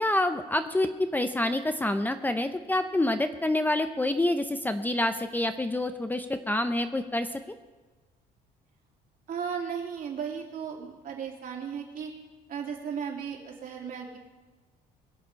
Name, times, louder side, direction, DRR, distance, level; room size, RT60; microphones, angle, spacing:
voice 1, 0.0-7.6, left 1 dB, 10° left, 8 dB, 0.7 m, -27 dB
voice 2, 9.3-12.1 12.5-14.2, right 7 dB, 55° right, 0 dB, 3.2 m, -35 dB
21.5 x 7.3 x 5.7 m, 1.2 s
cardioid pair, 110°, 17 cm